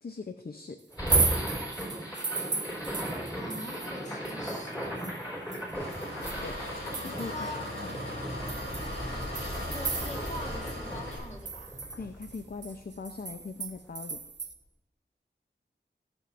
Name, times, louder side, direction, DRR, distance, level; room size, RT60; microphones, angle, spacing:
voice 1, 0.0-0.8 1.1-1.3 1.5-1.8 6.4-6.6 7.0-7.3 7.8-8.0 12.0-14.2, left 4 dB, 55° left, 6 dB, 0.6 m, -41 dB
sound 1, 0.9-13.1, equal, 20° left, 3.8 m, -36 dB
sound 2, 0.9-4.0 4.3-7.5 7.9-8.0 8.5-10.4 10.7-10.8 11.1-14.5, right 4 dB, 65° right, 0.6 m, -34 dB
voice 2, 3.4-4.9 7.2-7.8 9.7-11.8, left 1 dB, 35° left, 1 dB, 1.5 m, -43 dB
Engine, 5.7-11.2, left 1 dB, 85° left, 3.7 m, -38 dB
16.0 x 7.0 x 2.5 m, 0.89 s
wide cardioid pair, 45°, 20 cm